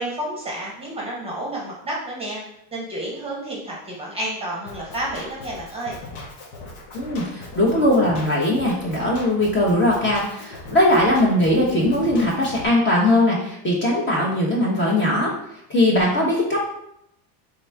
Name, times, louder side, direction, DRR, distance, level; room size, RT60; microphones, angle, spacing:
voice 1, 0.0-2.4 2.7-6.0, right 1 dB, 10° right, -4 dB, 1.0 m, -30 dB
Drum kit, 4.7-12.7, left 2 dB, 80° left, 1.5 m, -39 dB
voice 2, 6.9-15.3 15.7-16.7, left 1 dB, 25° left, -3 dB, 1.1 m, -20 dB
4.2 x 3.6 x 3.4 m, 0.77 s
supercardioid pair, 140°, 49 cm